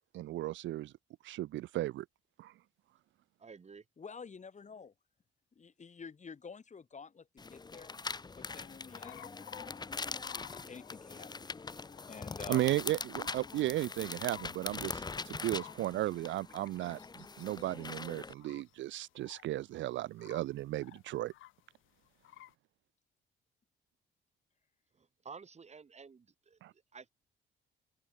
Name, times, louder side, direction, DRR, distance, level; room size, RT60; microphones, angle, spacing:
voice 1, 0.1-0.9 1.2-2.1 2.4-2.5 12.5-21.3 26.6-26.7, right 15 dB, 70° right, 0.4 m, -35 dB
voice 2, 3.4-3.9 24.9-27.1, right 5 dB, 35° right, 1.9 m, -52 dB
voice 3, 4.0-4.9 5.5-7.9 8.3-9.3 10.3-12.7, left 5 dB, 35° left, 3.2 m, -50 dB
sound 1, 7.4-18.3, left 4 dB, 20° left, 0.8 m, -42 dB
sound 2, 8.4-11.2 11.9-12.1 12.4-12.8 13.1-19.7 20.0-21.6 22.0-22.5, left 15 dB, 80° left, 0.8 m, -54 dB
open air
cardioid pair, 90°, 20 cm